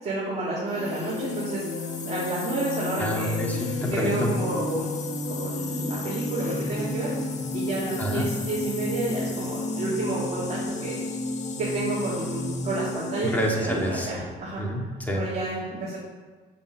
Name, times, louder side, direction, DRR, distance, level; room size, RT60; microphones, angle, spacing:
voice 1, 0.0-1.6 2.0-3.4 3.9-4.9 5.3-7.1 7.5-11.0 11.6-14.7 15.1-16.0, right 2 dB, 40° right, -8 dB, 3.1 m, -30 dB
sound 1, 0.7-14.1, left 2 dB, 45° left, 1.3 m, -32 dB
voice 2, 3.0-4.3 8.0-8.3 13.2-14.1 14.6-15.2, right 1 dB, 10° left, -2 dB, 2.2 m, -28 dB
7.4 x 6.8 x 6.5 m, 1.4 s
cardioid pair, 110°, 17 cm